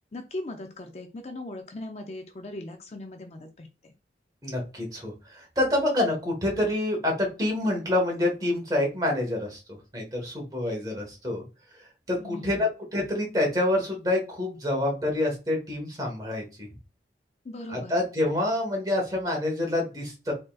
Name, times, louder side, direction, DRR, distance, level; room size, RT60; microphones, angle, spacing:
voice 1, 0.1-3.9 12.2-12.6 17.4-17.9, left 2 dB, 35° left, 5 dB, 0.5 m, -39 dB
voice 2, 4.4-9.6 9.9-11.4 12.1-16.7 17.7-20.3, left 1 dB, 20° right, 0 dB, 1.3 m, -27 dB
3.9 x 3.8 x 2.3 m, 0.30 s
head